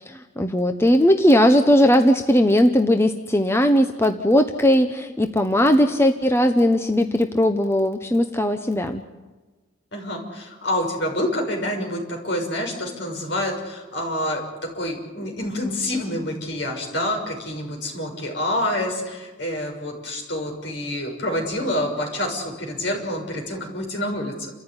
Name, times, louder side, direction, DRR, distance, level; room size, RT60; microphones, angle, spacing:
voice 1, 0.0-9.0, equal, 15° left, 6 dB, 0.9 m, -18 dB
voice 2, 9.9-24.5, left 1 dB, 65° left, 2 dB, 6.6 m, -27 dB
29.5 x 14.5 x 9.7 m, 1.2 s
head